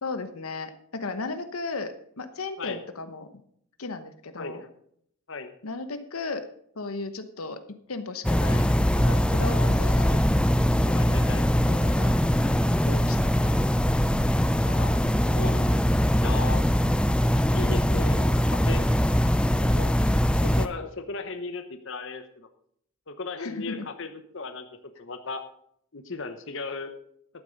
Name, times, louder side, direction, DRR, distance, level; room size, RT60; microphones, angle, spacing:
voice 1, 0.0-3.3 3.8-4.6 5.6-6.4 6.7-8.7 8.9-10.1 10.8-11.2 11.7-12.2 12.8-13.5 23.4-23.9, left 3 dB, 85° left, 10 dB, 1.0 m, -35 dB
voice 2, 4.4-4.7 5.3-5.5 9.5-9.8 10.1-10.2 10.9-11.5 14.6-15.8 16.1-16.6 17.5-18.9 19.6-19.9 20.4-22.5 23.1-24.7 25.0-25.4 25.9-26.9, left 4 dB, 60° left, 8 dB, 1.0 m, -36 dB
sound 1, 8.2-20.7, equal, 5° left, 0.4 m, -22 dB
11.5 x 9.0 x 5.3 m, 0.68 s
head